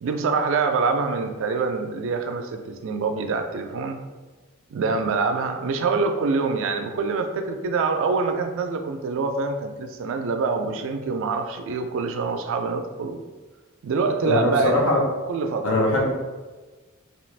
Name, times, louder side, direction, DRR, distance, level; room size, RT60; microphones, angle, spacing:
voice 1, 0.0-4.0 4.7-13.2 13.8-14.8 15.3-15.6, right 4 dB, 65° right, 6 dB, 0.3 m, -25 dB
voice 2, 14.2-15.0 15.6-16.1, left 1 dB, 75° left, -3 dB, 0.9 m, -21 dB
2.8 x 2.4 x 3.2 m, 1.3 s
head